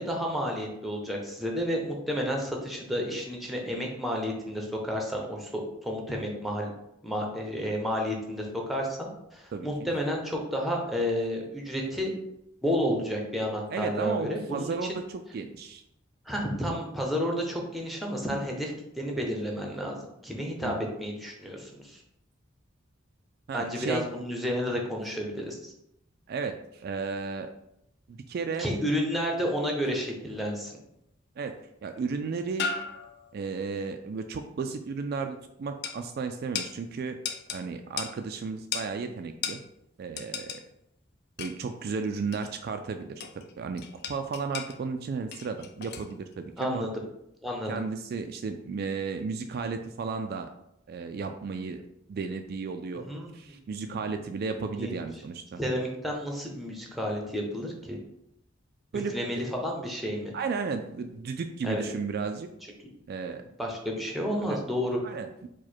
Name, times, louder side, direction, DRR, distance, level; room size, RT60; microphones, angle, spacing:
voice 1, 0.0-6.7 7.0-12.1 12.6-15.0 16.3-20.0 20.2-22.0 23.5-25.7 28.6-30.7 46.6-46.9 47.4-47.8 53.1-53.3 53.7-54.0 54.8-55.0 55.6-58.0 59.1-60.3 61.6-61.8 63.6-65.0, equal, ahead, 0 dB, 0.7 m, -31 dB
voice 2, 13.7-15.8 20.6-20.9 23.5-24.0 26.3-27.5 28.1-28.7 31.4-32.7 33.3-37.2 37.5-39.6 40.0-40.6 41.4-43.8 44.1-46.9 47.7-50.5 50.9-51.8 52.1-53.1 53.3-55.6 58.9-59.4 60.3-62.5 63.1-63.4 64.3-64.6 65.0-65.5, right 5 dB, 55° right, 7 dB, 0.3 m, -34 dB
sound 1, 30.3-30.8 32.0-32.1 32.6-33.4 35.8-36.0 36.5-36.7 37.2-37.6 38.0-38.1 38.7-38.9 39.4-39.6 40.2-40.6 41.4-41.7 42.3-42.6 43.2-43.5 43.8-44.8 45.3-46.1 46.6-46.7, left 6 dB, 55° left, 0.4 m, -35 dB
4.7 x 2.2 x 4.3 m, 0.80 s
head